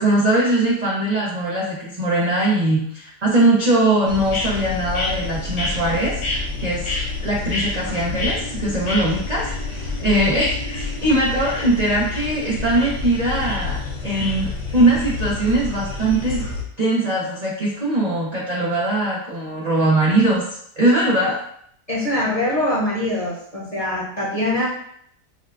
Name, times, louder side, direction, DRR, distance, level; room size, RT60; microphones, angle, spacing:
voice 1, 0.0-6.2 6.6-6.9 7.2-13.8 14.0-16.5 16.8-21.4, right 1 dB, 60° right, -5 dB, 0.4 m, -21 dB
sound 1, 4.1-16.6, left 3 dB, 75° left, 1.6 m, -28 dB
voice 2, 21.9-24.7, left 1 dB, 30° left, -7 dB, 0.8 m, -23 dB
6.8 x 2.3 x 2.5 m, 0.68 s
omnidirectional pair, 1.9 m